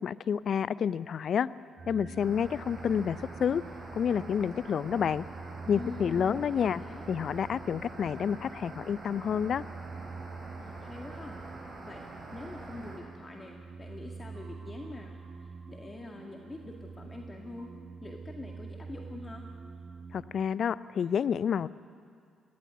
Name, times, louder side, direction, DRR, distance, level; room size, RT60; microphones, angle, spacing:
voice 1, 0.0-1.5 1.9-3.6 3.9-5.2 5.7-6.8 7.1-9.6 20.1-21.7, left 7 dB, 55° left, 18 dB, 0.5 m, -29 dB
sound 1, 1.8-20.4, right 4 dB, 50° right, 1.6 m, -46 dB
sound 2, 2.2-13.0, right 2 dB, 35° right, 6.6 m, -46 dB
voice 2, 5.6-7.0 10.6-11.4 11.8-12.0 12.3-17.7 18.0-19.4, left 2 dB, 30° left, 1 dB, 2.1 m, -45 dB
18.5 x 17.0 x 9.7 m, 2.2 s
hypercardioid pair, 45°, 0 cm